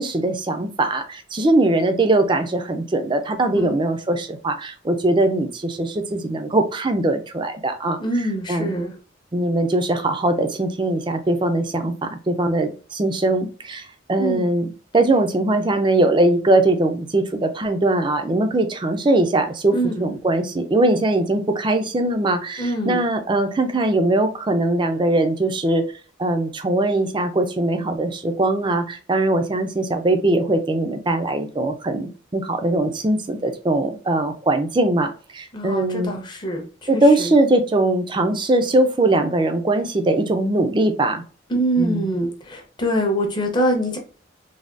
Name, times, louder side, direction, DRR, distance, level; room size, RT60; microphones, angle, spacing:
voice 1, 0.0-8.2 8.5-8.7 9.3-25.8 26.2-36.1 36.9-41.2 41.8-42.1, right 2 dB, 25° right, 7 dB, 0.4 m, -21 dB
voice 2, 8.0-8.9 14.2-14.5 19.7-20.1 22.6-23.0 35.5-37.3 41.5-44.0, right 1 dB, 20° left, 2 dB, 0.6 m, -24 dB
3.3 x 2.2 x 2.5 m, 0.38 s
head